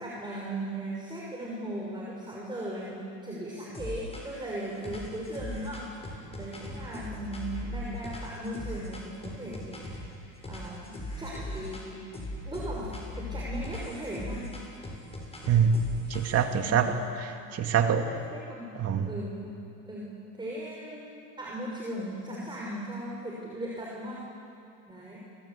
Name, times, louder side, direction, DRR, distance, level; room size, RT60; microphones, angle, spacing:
voice 1, 0.0-9.9 10.4-14.4 16.6-16.8 17.4-17.5 18.1-18.7 19.0-19.5 19.9-20.1 20.4-24.2 24.9-25.2, right 1 dB, 15° right, -4 dB, 5.9 m, -38 dB
sound 1, 3.7-4.5 4.8-10.1 10.4-11.9 12.1-16.6, left 1 dB, 15° left, 7.4 m, -39 dB
voice 2, 15.5-15.8 16.1-18.1 18.8-19.1, right 7 dB, 45° right, 5 dB, 2.4 m, -25 dB
29.0 x 23.0 x 8.6 m, 2.6 s
supercardioid pair, 110°, 35 cm